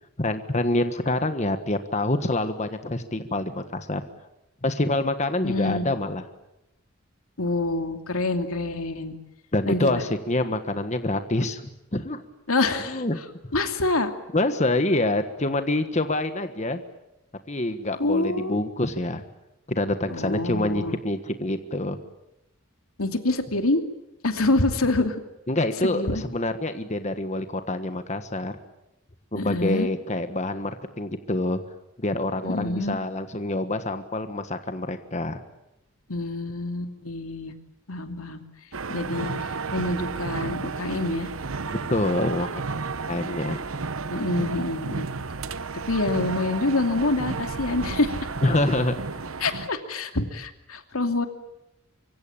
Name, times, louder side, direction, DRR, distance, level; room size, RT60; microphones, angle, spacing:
voice 1, 0.2-4.0 4.6-6.2 9.5-11.6 11.9-12.2 12.8-13.2 14.3-16.8 17.5-19.2 19.7-22.0 25.5-28.6 29.3-31.6 32.0-35.4 41.7-43.6 48.4-49.3, left 2 dB, 35° left, 8 dB, 1.4 m, -26 dB
voice 2, 5.4-5.9 7.4-9.1 9.7-10.0 12.5-13.0 13.5-14.1 18.0-18.6 20.1-21.0 23.0-23.8 24.2-25.2 25.8-26.2 29.3-29.9 32.4-33.0 36.1-37.5 37.9-38.4 38.9-39.3 39.7-41.3 44.1-45.1 45.9-48.1 49.4-51.3, left 2 dB, 90° left, 6 dB, 2.7 m, -26 dB
sound 1, 38.7-49.7, right 4 dB, 75° right, 1.0 m, -32 dB
25.0 x 24.5 x 8.8 m, 0.90 s
head